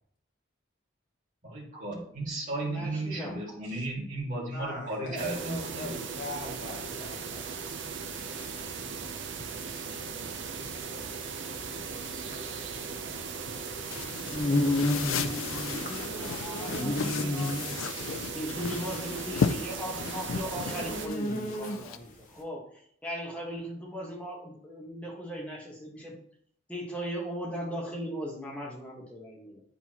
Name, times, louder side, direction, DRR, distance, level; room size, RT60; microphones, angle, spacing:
voice 1, 1.4-5.9, right 2 dB, 40° right, -5 dB, 2.3 m, -34 dB
voice 2, 2.5-3.4 13.9-17.6 18.3-22.6 23.0-26.2 26.7-29.6, equal, 5° left, -3 dB, 1.4 m, -39 dB
voice 3, 4.5-7.5, left 2 dB, 60° left, -1 dB, 1.2 m, -40 dB
sound 1, 5.2-21.1, right 5 dB, 70° right, 0.7 m, -38 dB
sound 2, 7.9-22.1, left 1 dB, 40° left, 0.9 m, -34 dB
sound 3, 13.9-22.0, left 6 dB, 85° left, 0.4 m, -35 dB
10.0 x 4.0 x 3.0 m, 0.64 s
head